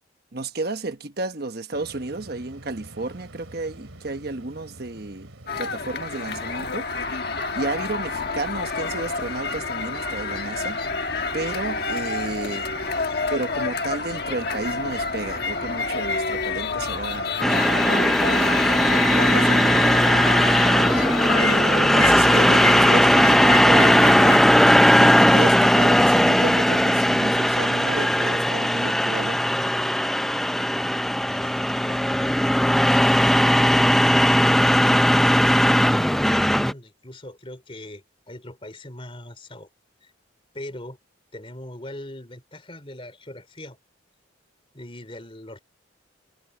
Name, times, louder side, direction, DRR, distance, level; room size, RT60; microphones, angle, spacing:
voice 1, 0.3-5.3 5.6-6.9 7.5-10.8 11.3-12.7 13.3-18.7 19.1-20.2 21.4-24.4 24.9-29.4, right 3 dB, 50° right, 1.2 m, -32 dB
sound 1, 1.7-19.0, right 1 dB, 85° right, 2.8 m, -46 dB
sound 2, 5.5-24.4, left 4 dB, 50° left, 1.4 m, -28 dB
sound 3, 17.4-36.7, equal, ahead, 0.4 m, -18 dB
voice 2, 31.2-34.3 34.9-39.7 40.0-40.1 40.5-41.0 41.3-43.8 44.7-45.6, left 1 dB, 25° left, 3.8 m, -41 dB
head